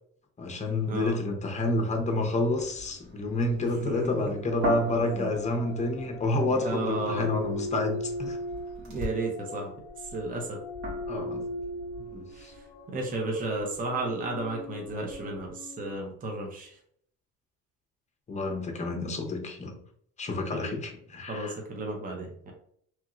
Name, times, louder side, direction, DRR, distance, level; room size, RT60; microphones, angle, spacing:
voice 1, 0.4-8.4 11.1-11.5 12.1-12.5 18.3-19.7 20.2-21.5, left 2 dB, 20° left, 3 dB, 0.7 m, -29 dB
sound 1, 2.4-9.3 9.7-15.5, right 1 dB, 65° right, 1.5 m, -41 dB
voice 2, 3.6-4.3 5.0-5.3 6.6-7.4 8.8-9.7 10.1-10.6 12.3-12.6 12.9-16.8 20.5-20.7 21.3-22.5, right 2 dB, 25° right, 1 dB, 0.7 m, -33 dB
sound 2, 4.4-16.0, left 1 dB, 65° left, 0.5 m, -39 dB
3.0 x 2.7 x 2.4 m, 0.65 s
cardioid pair, 105°, 32 cm